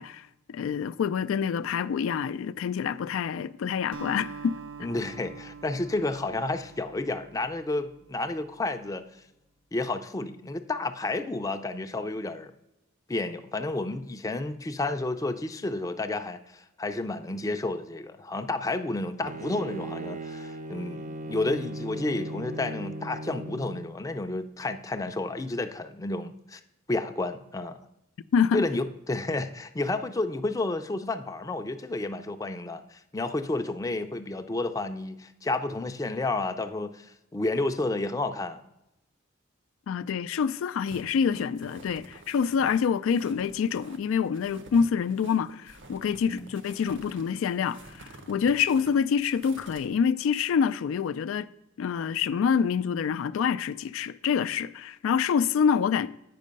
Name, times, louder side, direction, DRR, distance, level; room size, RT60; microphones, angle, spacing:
voice 1, 0.0-4.5 28.3-28.6 39.9-51.5 51.8-56.1, left 7 dB, 80° left, 0.3 m, -26 dB
Acoustic guitar, 3.9-8.4, right 5 dB, 85° right, 0.7 m, -45 dB
voice 2, 4.8-9.0 9.7-12.5 13.1-26.6 26.9-27.8 28.5-38.6 46.3-46.5, left 2 dB, 15° left, 0.4 m, -31 dB
Bowed string instrument, 19.2-24.0, right 1 dB, 40° right, 0.6 m, -37 dB
sound 1, 40.8-49.9, right 2 dB, 65° right, 1.0 m, -49 dB
8.5 x 5.4 x 5.2 m
head